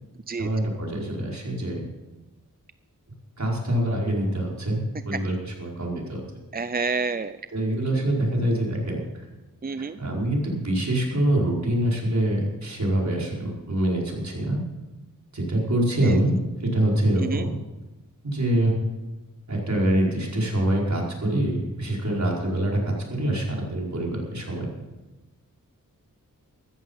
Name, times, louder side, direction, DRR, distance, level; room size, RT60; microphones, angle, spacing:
voice 1, 0.4-1.9 3.4-6.2 7.5-9.0 10.0-14.6 15.3-17.6 18.2-18.7 19.5-24.7, right 1 dB, 55° right, -2 dB, 4.9 m, -25 dB
voice 2, 6.5-7.3 9.6-10.0 17.2-17.4, right 4 dB, 25° right, 12 dB, 0.5 m, -28 dB
14.5 x 13.5 x 5.5 m, 1.1 s
wide cardioid pair, 60°, 34 cm